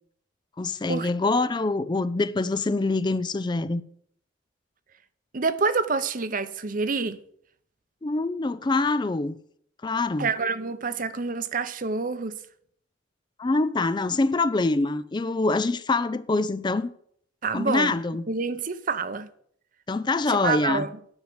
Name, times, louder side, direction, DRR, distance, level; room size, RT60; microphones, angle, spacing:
voice 1, 0.6-3.8 8.0-9.4 9.8-10.3 13.4-16.9 17.5-18.3 19.9-20.9, left 3 dB, 25° left, 0.4 m, -25 dB
voice 2, 5.3-7.2 10.2-12.4 17.4-17.9 18.3-19.3 20.3-21.0, right 4 dB, 45° right, 0.8 m, -27 dB
9.9 x 6.5 x 7.9 m
head